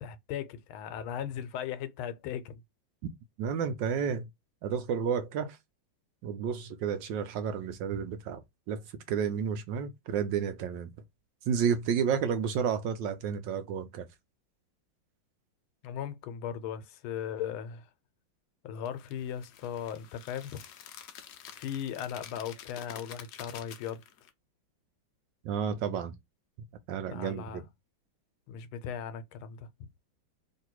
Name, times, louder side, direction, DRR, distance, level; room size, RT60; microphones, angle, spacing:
voice 1, 0.0-2.6 15.8-17.9 18.6-20.6 21.5-24.0 27.1-27.6 28.5-29.7, left 9 dB, 85° left, 1.5 m, -37 dB
voice 2, 3.4-4.3 4.6-5.6 6.2-10.9 11.5-14.1 25.4-26.2 26.9-27.6, right 7 dB, 75° right, 1.2 m, -31 dB
sound 1, 18.8-24.3, left 9 dB, 70° left, 1.0 m, -49 dB
3.3 x 2.7 x 4.4 m
omnidirectional pair, 2.2 m